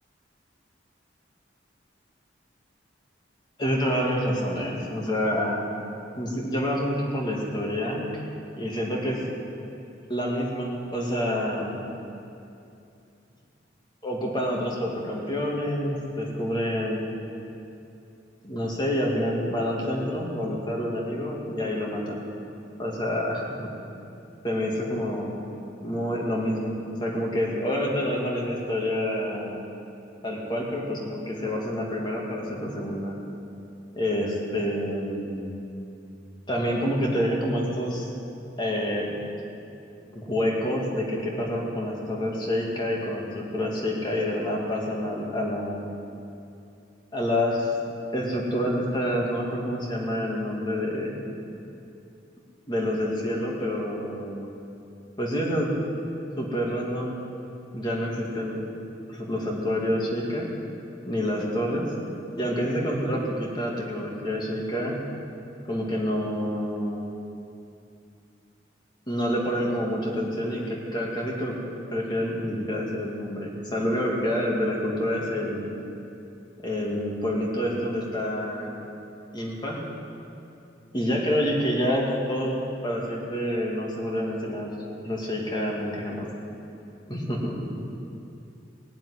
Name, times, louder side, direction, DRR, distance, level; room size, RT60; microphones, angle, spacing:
voice 1, 3.6-5.6 6.2-8.1 8.6-9.2 10.1-11.8 14.0-17.0 18.4-22.2 22.8-23.7 24.4-25.3 25.8-26.7 27.0-29.6 30.2-33.2 33.9-35.5 36.5-38.1 38.6-39.2 40.1-45.9 47.1-47.7 48.1-51.3 52.7-54.5 55.2-55.8 56.4-57.2 57.7-58.6 59.1-60.5 61.1-61.9 62.4-65.0 65.7-67.0 69.1-71.6 71.9-75.6 76.6-78.7 79.3-79.8 80.9-82.6 82.8-84.7 85.0-86.3 87.1-87.7, equal, 25° left, -2 dB, 2.4 m, -28 dB
18.0 x 7.5 x 9.7 m, 2.6 s
head